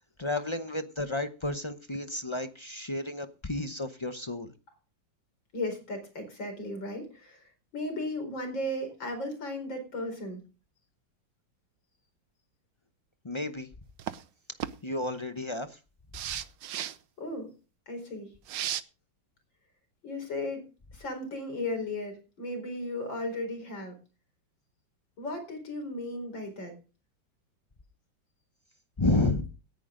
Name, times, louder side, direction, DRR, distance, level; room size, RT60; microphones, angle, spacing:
voice 1, 0.2-4.5 13.2-13.7 14.8-15.8 29.0-29.4, left 2 dB, 40° left, 9 dB, 0.4 m, -31 dB
voice 2, 5.5-10.4 17.2-17.5 17.9-18.3 20.0-24.0 25.2-26.7, left 1 dB, 80° left, 6 dB, 5.1 m, -36 dB
sound 1, 14.0-14.2 14.6-14.7 16.1-16.9 18.5-18.8, right 11 dB, 80° right, 1.5 m, -34 dB
17.5 x 10.5 x 3.8 m, 0.33 s
omnidirectional pair, 2.0 m